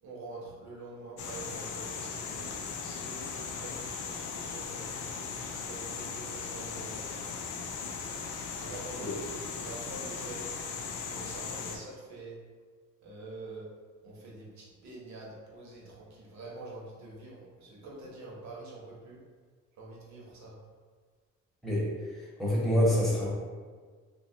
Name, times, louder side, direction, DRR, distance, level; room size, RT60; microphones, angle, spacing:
voice 1, 0.0-7.1 8.5-10.6 11.1-12.4 13.0-13.7 14.0-19.2 19.8-20.6, right 2 dB, 65° right, -4 dB, 1.0 m, -46 dB
sound 1, 1.2-11.8, left 5 dB, 80° left, 0.5 m, -38 dB
voice 2, 21.6-23.3, equal, ahead, -6 dB, 0.9 m, -27 dB
2.9 x 2.3 x 2.8 m, 1.5 s
cardioid pair, 90°, 30 cm